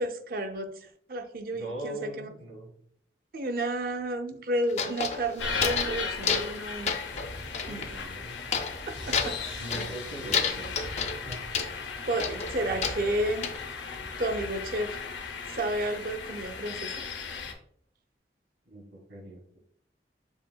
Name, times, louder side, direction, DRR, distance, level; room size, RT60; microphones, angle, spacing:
voice 1, 0.0-2.3 3.3-7.0 7.7-7.9 8.9-9.9 12.1-13.5 14.2-15.0 15.5-16.9, right 1 dB, 50° right, 0.5 m, -32 dB
voice 2, 1.5-2.7 7.5-8.4 9.6-10.9 11.2-11.4 18.6-19.6, right 1 dB, 90° right, 1.7 m, -41 dB
sound 1, 4.7-6.0 6.2-6.6 6.9-7.9 8.5-8.8 9.1-10.0 10.3-11.7 12.2-13.6, left 6 dB, 40° left, 0.4 m, -30 dB
sound 2, 5.4-17.5, left 5 dB, 85° left, 0.7 m, -37 dB
sound 3, 7.1-16.0, equal, 70° right, 1.0 m, -46 dB
7.1 x 2.7 x 2.2 m
head